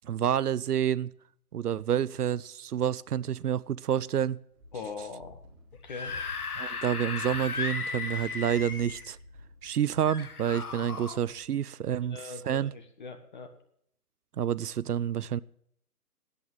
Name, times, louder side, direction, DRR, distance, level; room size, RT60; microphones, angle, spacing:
voice 1, 0.0-1.1 1.5-4.4 6.6-9.2 9.6-12.7 14.4-15.4, right 9 dB, 75° right, 0.6 m, -29 dB
Run, 4.5-11.6, left 1 dB, 10° right, 1.2 m, -53 dB
voice 2, 4.7-5.4 5.8-6.1 11.9-13.5, left 4 dB, 30° left, 1.4 m, -41 dB
Screaming / Screech, 5.7-9.1 10.1-11.2, left 4 dB, 70° left, 1.6 m, -35 dB
10.5 x 8.5 x 8.9 m
hypercardioid pair, 165°, 46 cm